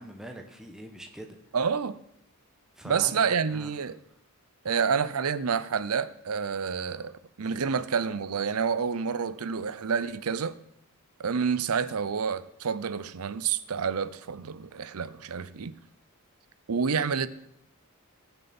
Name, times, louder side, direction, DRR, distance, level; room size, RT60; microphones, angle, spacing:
voice 1, 0.0-1.4 2.7-3.7 4.6-4.9, right 1 dB, ahead, 1.1 m, -44 dB
voice 2, 1.5-2.0 2.8-4.0 4.6-10.6 11.2-15.8 16.7-17.3, right 6 dB, 80° right, 0.6 m, -28 dB
20.5 x 7.0 x 4.3 m
head